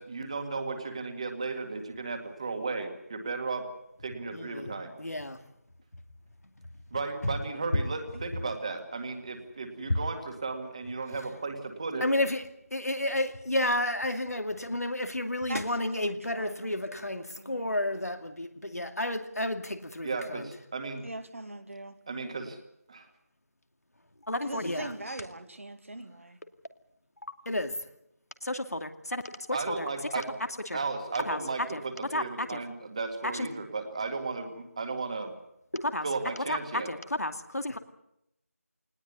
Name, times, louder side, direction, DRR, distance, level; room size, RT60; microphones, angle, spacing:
voice 1, 0.0-3.6 4.0-4.9 6.9-12.0 20.0-21.0 22.1-22.6 22.9-23.1 29.5-30.3 30.7-35.3 36.0-36.9, right 4 dB, 25° right, 7 dB, 2.1 m, -35 dB
voice 2, 4.3-5.4 7.2-7.4 12.0-20.5 24.3-24.9 27.5-27.7 28.4-29.2 29.5-29.9 30.7-30.8 31.3-31.4 31.7-31.8 32.1-32.6 33.2-33.5 35.7-36.1 36.5-37.8, left 1 dB, 80° left, 7 dB, 2.5 m, -31 dB
voice 3, 15.5-17.7 21.0-22.0 24.4-26.4, right 2 dB, 60° right, 8 dB, 2.3 m, -41 dB
20.0 x 18.5 x 9.4 m, 0.79 s
figure-of-eight pair, 170°, 8 cm